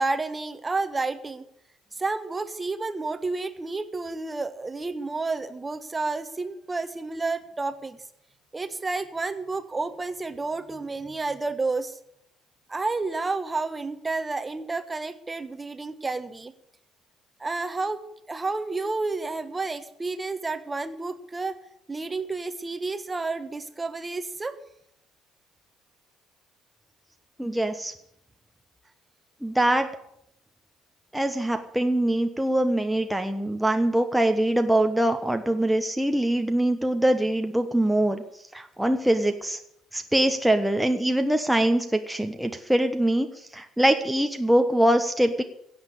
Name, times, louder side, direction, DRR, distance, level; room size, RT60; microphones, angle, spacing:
voice 1, 0.0-1.5 2.0-8.0 8.5-12.0 12.7-16.5 17.4-18.0 18.3-21.6 21.9-24.6, right 3 dB, 20° right, 11 dB, 1.3 m, -30 dB
voice 2, 27.4-27.9 29.4-29.9 31.1-38.2 38.5-39.6 39.9-45.4, right 1 dB, 5° right, 6 dB, 1.2 m, -23 dB
17.0 x 7.9 x 8.4 m, 0.76 s
figure-of-eight pair, 50°, 0 cm